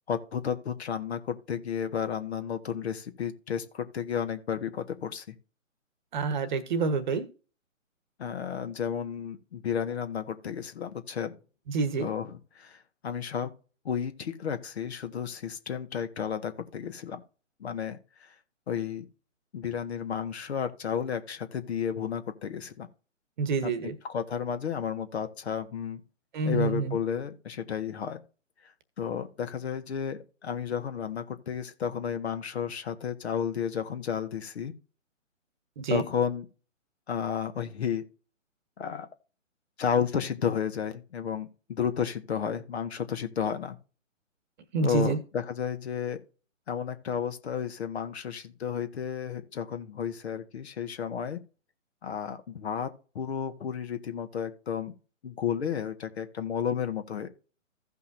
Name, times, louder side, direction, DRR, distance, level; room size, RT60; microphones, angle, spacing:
voice 1, 0.1-5.4 8.2-11.4 12.0-13.5 13.8-17.2 17.6-18.3 18.7-19.1 19.5-22.9 23.6-26.0 26.4-28.2 29.0-34.7 35.9-36.5 37.1-38.0 38.8-39.1 39.8-43.8 44.8-46.2 46.7-51.4 52.0-54.9 55.2-57.3, left 7 dB, 55° left, 1.7 m, -32 dB
voice 2, 6.1-7.3 11.7-12.1 23.4-23.9 26.3-26.9 35.8-36.0 44.7-45.2, right 4 dB, 35° right, 1.3 m, -27 dB
16.0 x 5.6 x 2.7 m
figure-of-eight pair, 145°, 39 cm